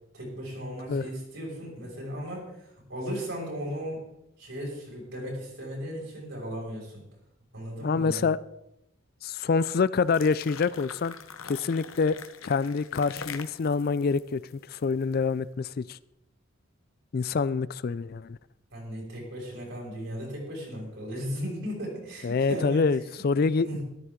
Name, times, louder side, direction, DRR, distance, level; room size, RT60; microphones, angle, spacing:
voice 1, 0.1-4.0 4.4-7.0 7.5-8.3 18.7-23.1 23.4-23.8, equal, 65° right, 6.2 m, -36 dB
voice 2, 7.8-8.4 9.2-11.1 11.4-12.2 12.4-14.4 14.7-16.0 17.1-18.4 22.2-23.7, left 4 dB, 50° left, 0.4 m, -26 dB
sound 1, 10.0-15.2, left 6 dB, 80° left, 1.0 m, -43 dB
14.0 x 13.0 x 3.8 m
head